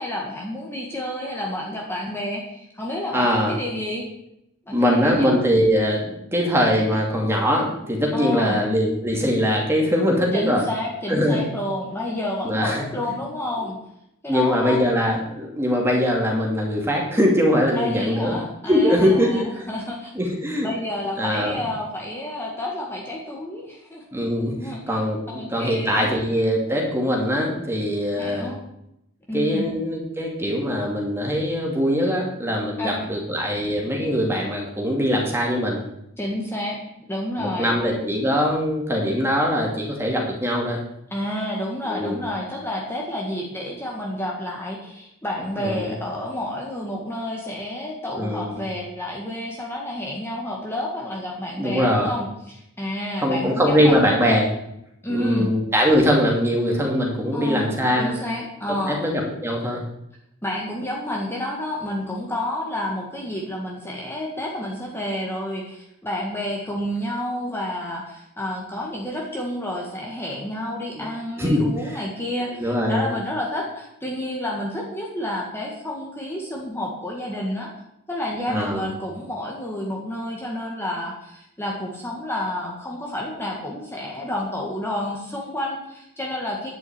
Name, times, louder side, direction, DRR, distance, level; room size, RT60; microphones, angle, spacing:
voice 1, 0.0-4.1 4.7-5.3 8.1-8.6 10.3-13.8 14.2-14.8 17.7-20.1 20.6-24.0 24.5-25.0 25.3-26.1 28.2-28.6 29.3-29.7 32.8-33.0 36.2-36.8 37.1-37.7 41.1-54.0 55.0-55.5 57.3-59.0 60.4-77.7 78.1-86.7, left 1 dB, 10° left, -2 dB, 1.9 m, -30 dB
voice 2, 3.1-3.5 4.7-10.6 11.1-11.4 12.4-12.8 14.3-18.4 18.6-19.7 20.1-20.7 21.2-21.6 24.1-24.6 24.9-28.5 29.3-35.8 37.4-40.8 41.8-42.2 45.6-45.9 48.2-48.6 51.6-52.1 53.2-54.5 55.1-58.1 58.9-59.8 71.0-71.1 71.4-71.7 72.5-73.1 78.5-78.9, equal, 10° right, -1 dB, 2.5 m, -22 dB
10.5 x 6.2 x 9.0 m, 0.80 s
head